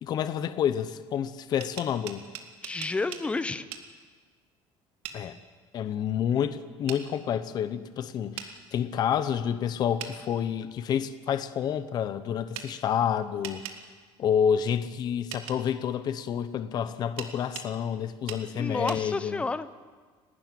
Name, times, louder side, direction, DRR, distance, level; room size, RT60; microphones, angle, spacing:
voice 1, 0.0-2.2 5.1-5.4 5.7-13.7 14.2-19.4, left 8 dB, 40° left, 12 dB, 0.9 m, -29 dB
sound 1, 1.4-3.3 3.7-3.9 5.0-5.2 6.9-7.0 8.4-8.5 10.0-10.2 12.5-12.7 13.4-13.8 15.3-15.6 17.2-17.7 18.3-18.4 18.9-19.0, right 9 dB, 65° right, 2.2 m, -39 dB
voice 2, 2.6-3.7 18.5-19.7, left 3 dB, 10° left, 13 dB, 0.8 m, -30 dB
30.0 x 12.5 x 9.4 m, 1.5 s
cardioid pair, 165°, 11 cm